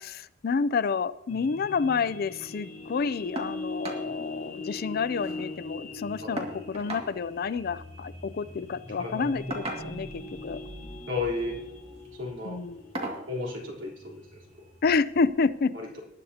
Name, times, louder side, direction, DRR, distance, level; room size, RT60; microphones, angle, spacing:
voice 1, 0.0-10.6 12.5-12.8 14.8-15.7, left 5 dB, 50° left, 16 dB, 0.4 m, -29 dB
sound 1, 1.3-15.4, left 2 dB, 35° left, 3.9 m, -41 dB
sound 2, 3.3-3.6 3.8-4.1 4.4-4.5 4.8-5.5 6.4-7.1 8.3-8.5 9.5-10.2 11.2-11.5 12.0-12.2 12.9-13.3 14.5-14.6 15.1-15.2, right 1 dB, 30° right, 2.1 m, -36 dB
voice 2, 11.1-11.6 12.2-12.6 13.3-14.4 15.7-16.0, left 3 dB, 70° right, -2 dB, 3.8 m, -33 dB
20.0 x 9.3 x 2.9 m, 0.96 s
head